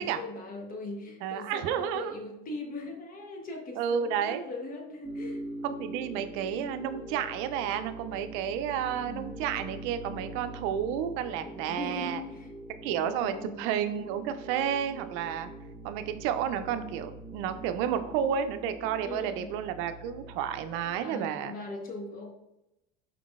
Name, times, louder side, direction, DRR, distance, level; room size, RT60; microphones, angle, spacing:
voice 1, 0.0-5.5 8.7-9.3 11.4-12.5 12.9-13.6 19.0-19.6 21.0-22.3, left 2 dB, 45° left, 3 dB, 0.9 m, -40 dB
voice 2, 1.2-2.1 3.8-4.4 5.6-12.2 12.8-15.5 15.8-21.5, right 9 dB, 75° right, 10 dB, 0.4 m, -31 dB
sound 1, 5.0-21.0, right 1 dB, 5° right, 1.4 m, -43 dB
4.6 x 3.7 x 2.4 m, 0.89 s
supercardioid pair, 110°, 21 cm